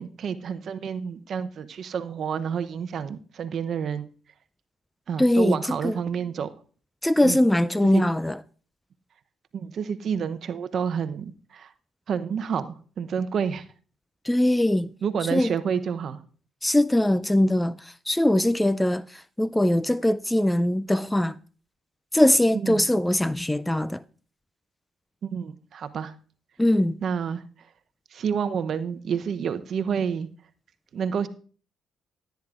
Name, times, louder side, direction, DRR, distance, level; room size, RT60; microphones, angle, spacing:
voice 1, 0.0-4.1 5.1-6.5 7.2-7.4 7.9-8.0 9.5-11.7 12.1-13.6 15.0-16.2 22.6-22.8 25.3-26.1 27.0-27.4 28.1-30.3 30.9-31.3, right 7 dB, 60° right, 0.7 m, -29 dB
voice 2, 5.2-6.0 7.0-8.4 14.2-14.9 15.3-15.6 16.6-21.4 22.1-24.0 26.6-27.0, left 1 dB, 10° left, 0.3 m, -22 dB
16.0 x 9.1 x 2.5 m
supercardioid pair, 65°, 0 cm